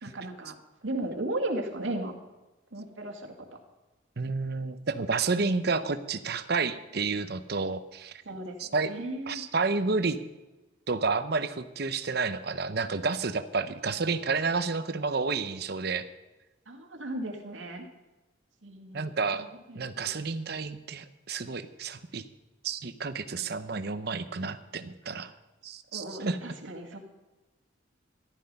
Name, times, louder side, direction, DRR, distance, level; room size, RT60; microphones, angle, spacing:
voice 1, 0.0-0.6 0.8-2.1 2.7-3.5 8.3-9.4 16.7-17.9 18.6-20.1 25.9-27.0, right 1 dB, 85° right, 3 dB, 2.2 m, -36 dB
voice 2, 4.2-8.1 8.6-8.9 9.3-10.2 10.9-16.1 18.9-19.4 19.7-22.2 22.6-25.3 25.6-26.4, right 4 dB, 55° right, 11 dB, 0.8 m, -30 dB
14.5 x 12.0 x 5.5 m, 1.1 s
head